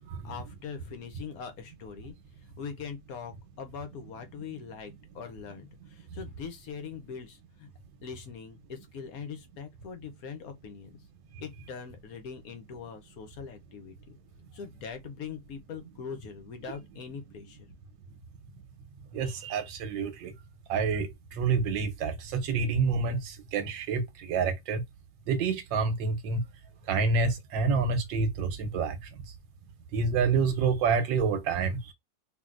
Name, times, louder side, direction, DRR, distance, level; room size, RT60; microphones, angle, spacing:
voice 1, 0.2-2.1 2.6-7.7 8.0-11.0 11.4-14.2 14.5-17.7, left 6 dB, 60° left, 1.0 m, -42 dB
voice 2, 19.1-20.3 20.7-24.8 25.3-26.4 26.9-29.0 29.9-31.9, right 5 dB, 85° right, 1.5 m, -28 dB
3.6 x 2.6 x 2.4 m
omnidirectional pair, 2.0 m